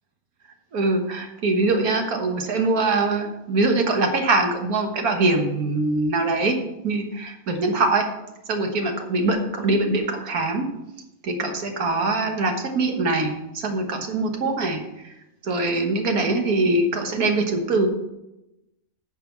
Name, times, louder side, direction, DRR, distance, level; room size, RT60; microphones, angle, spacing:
voice 1, 0.7-6.6 6.8-8.1 8.5-10.7 11.2-15.1 15.4-17.9, right 2 dB, 90° right, 4 dB, 1.9 m, -23 dB
9.9 x 6.4 x 5.8 m, 0.93 s
omnidirectional pair, 1.5 m